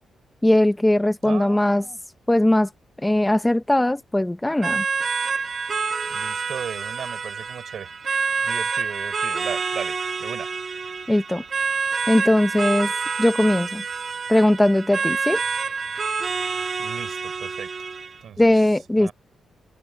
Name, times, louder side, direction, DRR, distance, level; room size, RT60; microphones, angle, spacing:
voice 1, 0.4-1.8 2.3-2.7 3.0-4.8 11.1-11.4 12.1-12.9 13.2-13.8 14.3-15.4 18.4-19.1, left 1 dB, 10° left, 0.7 m, -19 dB
voice 2, 1.2-2.0 6.1-7.9 8.4-10.5 16.8-17.9 18.2-18.5 19.0-19.1, right 8 dB, 65° right, 4.1 m, -36 dB
sound 1, 4.6-18.2, right 5 dB, 35° right, 1.8 m, -27 dB
wide cardioid pair, 155°, 0 cm